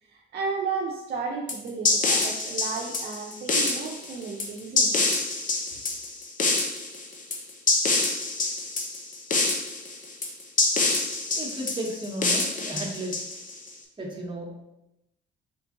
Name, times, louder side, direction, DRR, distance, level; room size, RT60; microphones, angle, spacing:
voice 1, 0.0-5.2, right 4 dB, 55° right, -3 dB, 0.6 m, -33 dB
sound 1, 1.5-13.7, left 3 dB, 40° left, 0.8 m, -26 dB
voice 2, 11.4-13.2 14.0-14.5, right 1 dB, 25° right, -2 dB, 1.1 m, -34 dB
4.4 x 2.4 x 3.7 m, 0.89 s
cardioid pair, 90°, 20 cm